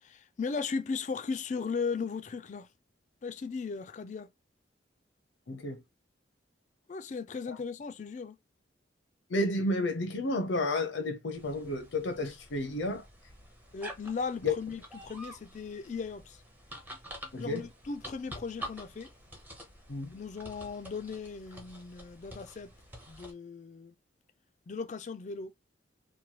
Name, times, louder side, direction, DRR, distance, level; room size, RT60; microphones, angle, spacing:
voice 1, 0.0-2.7 3.2-4.3 6.9-8.4 13.7-16.4 17.4-19.1 20.1-22.7 23.1-23.9 24.7-25.5, left 5 dB, 40° left, 0.3 m, -37 dB
voice 2, 5.5-5.8 9.3-13.0 14.4-14.5 17.3-17.6 19.9-20.1, left 2 dB, 75° left, 0.6 m, -31 dB
sound 1, 11.3-23.3, equal, 10° right, 0.6 m, -48 dB
3.0 x 2.2 x 2.8 m
head